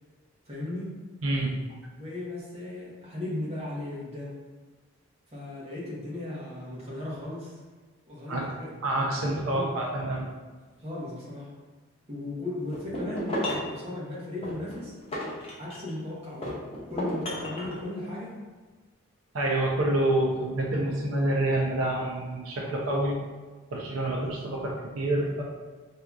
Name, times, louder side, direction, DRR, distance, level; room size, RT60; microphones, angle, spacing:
voice 1, 0.4-0.9 2.0-4.4 5.3-7.5 8.1-9.8 10.8-11.5 12.1-15.0 15.6-16.6 16.9-18.4, left 1 dB, 30° right, -7 dB, 0.9 m, -36 dB
voice 2, 1.2-1.6 8.3-8.5 8.8-10.3 19.3-23.2 23.7-25.4, right 1 dB, 85° right, -2 dB, 0.5 m, -27 dB
sound 1, 12.7-13.7 14.4-16.0 16.4-17.8, left 1 dB, 30° left, 0.5 m, -33 dB
3.6 x 2.6 x 2.3 m, 1.4 s
head